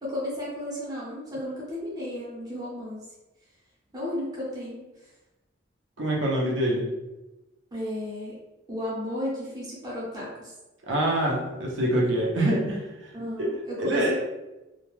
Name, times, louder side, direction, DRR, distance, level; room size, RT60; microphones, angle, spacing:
voice 1, 0.0-3.0 3.9-4.9 7.7-8.4 8.7-10.5 13.1-14.1, left 1 dB, 20° right, -7 dB, 0.7 m, -33 dB
voice 2, 6.0-6.8 10.9-12.9 13.8-14.1, right 1 dB, 70° right, -2 dB, 0.7 m, -25 dB
2.3 x 2.1 x 3.1 m, 1.0 s
head